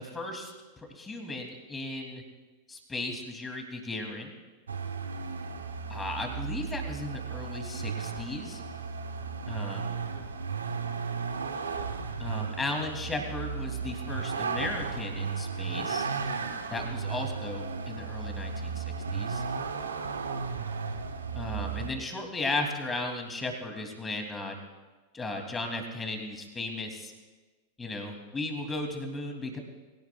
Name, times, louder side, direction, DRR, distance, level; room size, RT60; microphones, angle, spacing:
voice 1, 0.0-2.2 2.7-4.3 5.9-8.6 9.5-9.9 12.2-16.1 16.7-19.4 21.3-24.6 25.1-27.1 27.8-29.6, left 2 dB, 15° left, 3 dB, 2.7 m, -36 dB
Vehicle, 4.7-21.9, right 5 dB, 70° right, 1.1 m, -34 dB
23.0 x 17.0 x 2.3 m, 1.3 s
figure-of-eight pair, 90°, 0 cm